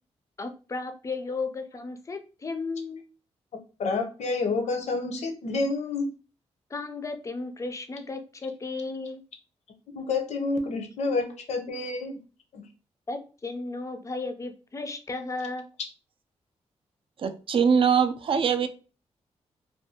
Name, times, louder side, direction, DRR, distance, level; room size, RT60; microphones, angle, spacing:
voice 1, 0.4-3.0 6.7-9.2 13.1-15.7, left 3 dB, 25° left, 8 dB, 0.4 m, -34 dB
voice 2, 3.8-6.1 9.9-12.1 12.5-12.6, left 3 dB, 75° left, 5 dB, 0.6 m, -28 dB
voice 3, 17.2-18.7, right 6 dB, 50° right, 9 dB, 0.4 m, -22 dB
2.5 x 2.3 x 2.7 m, 0.35 s
cardioid pair, 95°, 12 cm